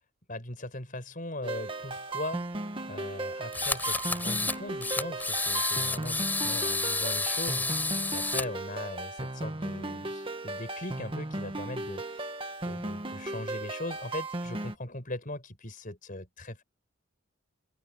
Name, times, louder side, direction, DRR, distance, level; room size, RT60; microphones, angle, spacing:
voice 1, 0.3-12.3 12.6-16.6, left 1 dB, 40° left, 5.4 m, -40 dB
sound 1, 1.4-14.8, right 2 dB, 25° right, 1.6 m, -36 dB
sound 2, 3.5-4.6 4.8-8.4, left 3 dB, 10° left, 4.5 m, -30 dB
open air
head